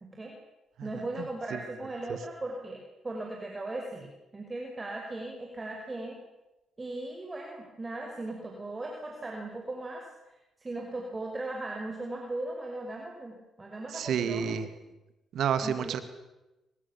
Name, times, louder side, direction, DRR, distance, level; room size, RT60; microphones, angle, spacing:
voice 1, 0.8-6.2 6.8-10.0 10.6-14.6 15.6-15.9, right 2 dB, 25° right, 1 dB, 5.7 m, -38 dB
voice 2, 13.9-14.7 15.3-16.0, right 7 dB, 70° right, 11 dB, 2.4 m, -29 dB
27.5 x 24.5 x 7.5 m, 1.0 s
cardioid pair, 90°, 0 cm